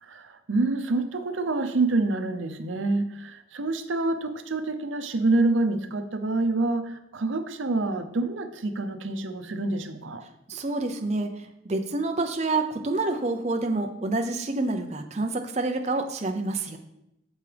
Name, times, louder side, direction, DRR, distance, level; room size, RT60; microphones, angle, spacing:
voice 1, 0.0-10.2, right 2 dB, 90° right, 8 dB, 0.7 m, -27 dB
voice 2, 10.5-16.8, right 2 dB, 35° right, 4 dB, 0.6 m, -28 dB
8.3 x 6.9 x 3.4 m, 0.84 s
head